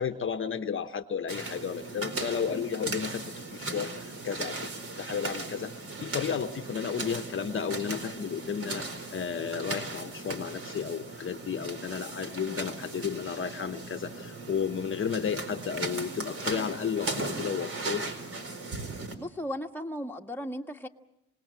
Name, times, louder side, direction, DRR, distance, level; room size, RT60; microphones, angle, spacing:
voice 1, 0.0-4.7 5.0-5.7 6.0-18.0, left 7 dB, 40° left, 8 dB, 1.1 m, -33 dB
sound 1, 1.3-19.1, right 3 dB, 50° right, 4.3 m, -37 dB
voice 2, 19.2-20.9, equal, 5° left, 2 dB, 1.5 m, -36 dB
28.0 x 19.0 x 7.7 m, 0.85 s
cardioid pair, 90°, 30 cm